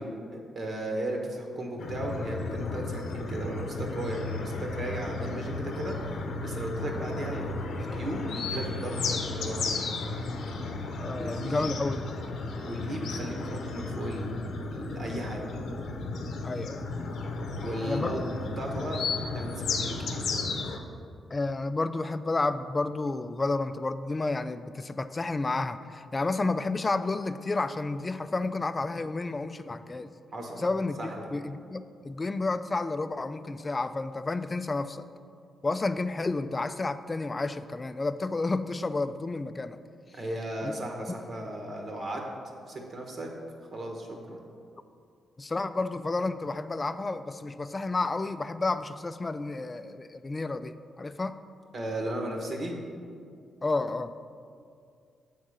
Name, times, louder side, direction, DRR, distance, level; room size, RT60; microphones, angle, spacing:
voice 1, 0.0-6.0 6.4-9.8 11.1-11.7 12.6-14.4 14.7-15.4 17.5-18.2 18.6-19.1 19.3-20.2 30.3-30.6 31.0-31.3 40.1-42.2 42.6-43.3 43.7-44.4 51.7-52.8, right 1 dB, 50° right, 1 dB, 1.2 m, -35 dB
sound 1, 1.8-20.8, left 3 dB, 75° left, 0.7 m, -34 dB
voice 2, 11.0-12.0 16.4-16.9 17.8-18.1 21.3-30.1 30.6-35.0 35.6-39.8 40.6-40.7 45.4-51.4 53.6-54.1, left 3 dB, 30° left, 12 dB, 0.3 m, -31 dB
7.4 x 3.7 x 6.4 m, 2.3 s
cardioid pair, 75°, 0 cm